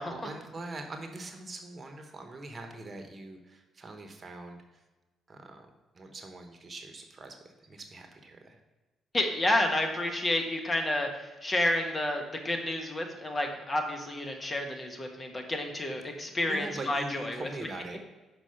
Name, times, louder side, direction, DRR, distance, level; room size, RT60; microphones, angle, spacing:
voice 1, 0.1-4.8 5.3-5.7 5.9-8.6 16.4-18.0, right 2 dB, 40° right, 5 dB, 1.0 m, -43 dB
voice 2, 9.1-11.1 11.4-17.5, left 1 dB, 30° left, 3 dB, 1.4 m, -30 dB
6.1 x 4.9 x 5.7 m, 1.2 s
hypercardioid pair, 50°, 0 cm